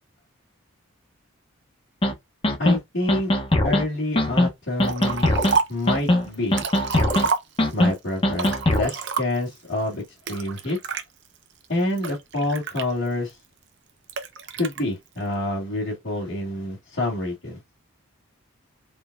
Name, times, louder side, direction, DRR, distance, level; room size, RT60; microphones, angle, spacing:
sound 1, 2.0-2.1 2.4-2.8 3.1-3.8 4.2-4.5 4.8-5.6 5.9-6.3 6.5-7.3 7.6-7.9 8.2-8.9, left 1 dB, 25° left, 1.1 m, -20 dB
voice 1, 2.6-3.3 3.6-5.3 5.7-6.6 7.7-10.0 10.3-10.8 11.7-13.4 14.6-17.6, left 1 dB, 55° left, 2.5 m, -27 dB
Liquid, 4.8-5.9 6.3-7.9 8.3-9.6 10.3-11.0 11.6-13.3 14.1-14.8, right 5 dB, 55° right, 0.9 m, -28 dB
4.6 x 3.8 x 2.4 m
head